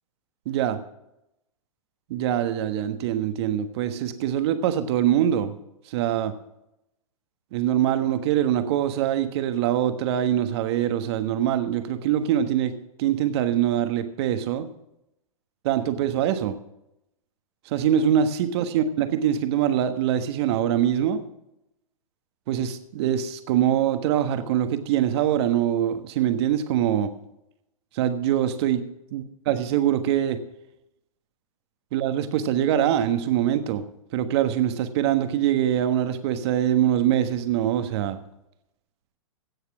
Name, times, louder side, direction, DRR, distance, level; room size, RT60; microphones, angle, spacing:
voice 1, 0.4-0.8 2.1-5.5 5.9-6.3 7.5-12.7 13.0-14.7 15.6-16.6 17.7-21.2 22.5-27.1 27.9-28.9 29.1-30.4 31.9-33.8 34.1-38.2, right 10 dB, 50° right, 10 dB, 1.3 m, -23 dB
16.5 x 6.6 x 6.1 m, 0.85 s
hypercardioid pair, 120°, 18 cm